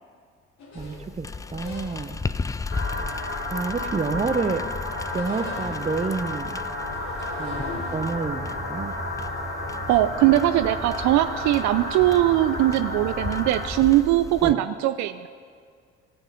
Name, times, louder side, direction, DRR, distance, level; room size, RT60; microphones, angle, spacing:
sound 1, 0.6-2.3 3.0-4.3 4.6-6.1 6.8-10.5 10.8-11.5 11.8-12.4 12.7-12.9 14.0-14.4, left 3 dB, 60° left, 2.3 m, -43 dB
voice 1, 0.7-2.2 3.5-4.6 5.1-6.5 7.4-8.9 14.4-14.6, right 4 dB, 20° right, 11 dB, 0.8 m, -29 dB
sound 2, 0.8-14.5, left 4 dB, 10° left, 0.3 m, -36 dB
sound 3, 2.7-13.7, left 1 dB, 45° left, 2.9 m, -32 dB
voice 2, 9.9-15.3, right 14 dB, 60° right, 11 dB, 0.5 m, -21 dB
15.5 x 7.2 x 5.7 m, 2.1 s
hypercardioid pair, 55°, 32 cm